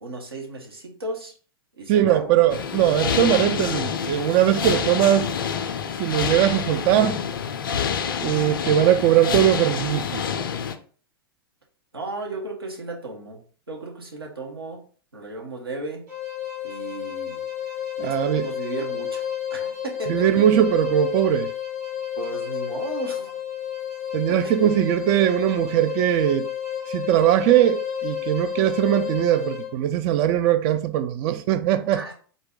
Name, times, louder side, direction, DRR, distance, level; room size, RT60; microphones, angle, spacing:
voice 1, 0.0-1.3 1.8-2.3 3.0-3.1 11.9-13.4 13.7-14.8 15.1-16.0 16.6-17.4 18.0-20.6 22.2-23.3 24.4-24.5 31.9-32.1, right 3 dB, 75° right, 1.2 m, -35 dB
voice 2, 1.9-5.3 6.0-7.2 8.2-10.2 18.0-18.5 20.1-21.5 24.1-26.5 26.9-32.0, right 11 dB, 35° right, 0.3 m, -20 dB
sound 1, 2.5-10.8, left 7 dB, 60° left, 0.4 m, -27 dB
sound 2, 16.1-29.7, left 9 dB, 50° right, 2.1 m, -31 dB
3.8 x 2.6 x 3.7 m
figure-of-eight pair, 100°, 13 cm